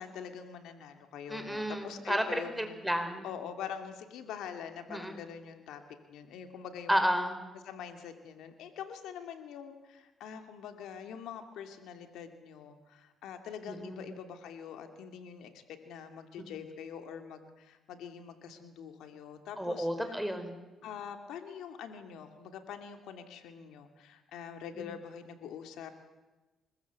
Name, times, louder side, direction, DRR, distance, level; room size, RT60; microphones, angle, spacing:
voice 1, 0.0-2.9 3.2-7.0 7.6-20.2 20.8-25.9, left 8 dB, 85° left, 6 dB, 2.4 m, -44 dB
voice 2, 1.3-3.3 4.9-5.1 6.9-7.4 13.7-14.1 19.6-20.6, equal, 5° right, 7 dB, 4.3 m, -32 dB
25.5 x 21.0 x 8.3 m, 1.1 s
cardioid pair, 90°, 0 cm